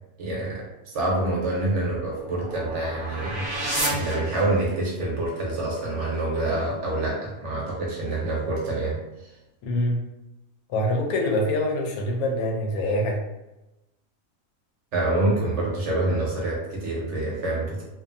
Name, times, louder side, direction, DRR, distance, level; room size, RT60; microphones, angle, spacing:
voice 1, 0.2-3.5 3.7-9.3 14.9-17.8, right 2 dB, 60° right, -3 dB, 0.9 m, -27 dB
sound 1, 1.5-5.0, right 1 dB, 25° right, 0.5 m, -32 dB
voice 2, 9.6-10.0 10.7-13.2, left 1 dB, 85° left, 1 dB, 1.1 m, -25 dB
2.6 x 2.4 x 2.5 m, 0.96 s
omnidirectional pair, 1.5 m